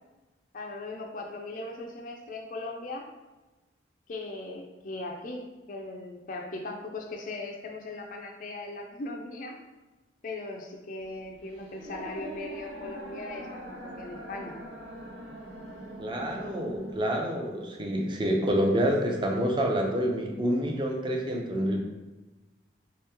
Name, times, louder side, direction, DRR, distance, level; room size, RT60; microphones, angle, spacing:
voice 1, 0.5-3.1 4.1-9.6 10.2-14.5, left 2 dB, 45° left, 1 dB, 0.4 m, -39 dB
sound 1, 11.0-17.0, right 1 dB, 85° right, 0.6 m, -42 dB
voice 2, 16.0-21.8, equal, 25° right, 1 dB, 0.5 m, -27 dB
3.2 x 3.0 x 3.5 m, 1.2 s
head